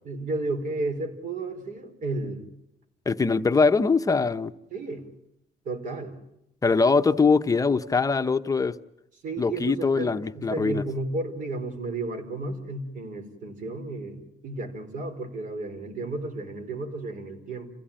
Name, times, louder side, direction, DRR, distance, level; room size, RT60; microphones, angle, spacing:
voice 1, 0.0-2.4 4.7-5.0 5.6-6.2 9.2-17.7, right 2 dB, 50° right, 4.7 m, -33 dB
voice 2, 3.1-4.5 6.6-8.8 9.4-10.8, left 4 dB, 20° left, 0.9 m, -22 dB
28.5 x 16.0 x 8.8 m
cardioid pair, 110°, 17 cm